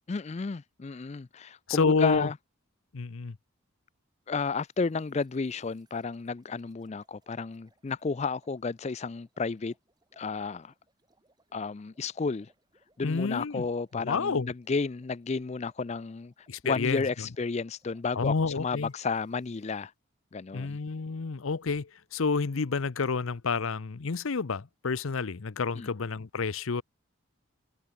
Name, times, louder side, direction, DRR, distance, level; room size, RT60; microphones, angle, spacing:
voice 1, 0.1-2.4 4.3-9.7 10.2-10.7 11.5-12.5 13.0-16.3 16.6-19.9 20.3-20.8 25.7-25.9, left 4 dB, 30° left, 0.4 m, -32 dB
voice 2, 1.7-2.3 2.9-3.4 13.0-13.6 14.0-14.5 16.5-17.0 18.2-18.9 20.5-26.8, left 4 dB, 70° left, 0.7 m, -29 dB
sound 1, 4.4-19.8, right 2 dB, 20° right, 7.9 m, -71 dB
head